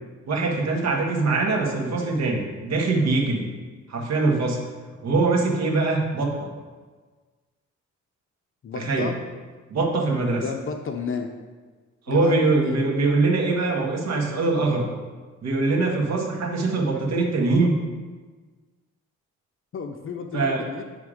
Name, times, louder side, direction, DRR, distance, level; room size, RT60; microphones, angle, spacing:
voice 1, 0.3-3.5 3.9-4.6 5.0-6.5 8.7-9.1 9.7-10.4 12.1-14.9 15.4-17.8 20.3-20.6, right 3 dB, 60° right, 0 dB, 1.7 m, -23 dB
voice 2, 8.6-9.1 10.4-11.3 12.1-12.8 19.7-20.8, left 5 dB, 45° left, 4 dB, 0.6 m, -32 dB
10.0 x 3.5 x 5.0 m, 1.4 s
cardioid pair, 90°, 30 cm